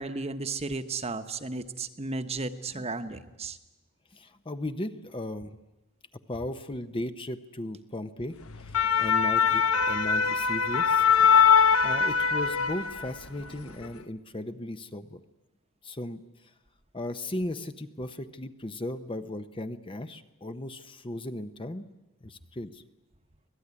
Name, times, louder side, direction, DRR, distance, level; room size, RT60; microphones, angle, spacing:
voice 1, 0.0-3.6, right 3 dB, 30° right, 9 dB, 1.1 m, -34 dB
voice 2, 4.1-5.6 6.3-11.1 11.7-15.2 15.8-16.2 16.9-21.8 22.2-22.8, left 1 dB, 25° left, 10 dB, 0.8 m, -36 dB
sound 1, 8.5-13.3 13.6-13.9, left 6 dB, 70° left, 1.2 m, -22 dB
25.5 x 18.5 x 9.8 m, 1.0 s
head